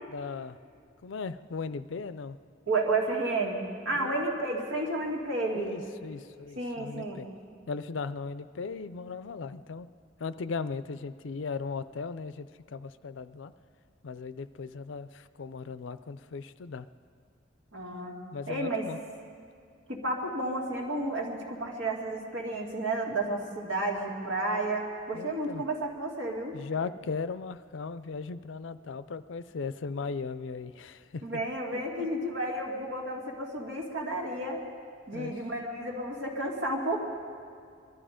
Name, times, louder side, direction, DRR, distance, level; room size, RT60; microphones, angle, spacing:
voice 1, 0.1-0.6 1.0-2.4 3.9-4.2 5.5-7.3 7.7-9.9 10.2-13.5 14.0-16.9 18.3-19.0 25.1-25.6 26.5-31.2 31.7-32.1 35.1-35.3, left 4 dB, 75° left, 14 dB, 0.5 m, -37 dB
voice 2, 2.7-5.8 6.6-7.3 17.7-18.2 18.5-18.9 19.9-26.6 31.2-34.6 35.1-37.0, right 2 dB, 80° right, 0 dB, 2.4 m, -32 dB
22.5 x 12.5 x 5.1 m, 2.2 s
head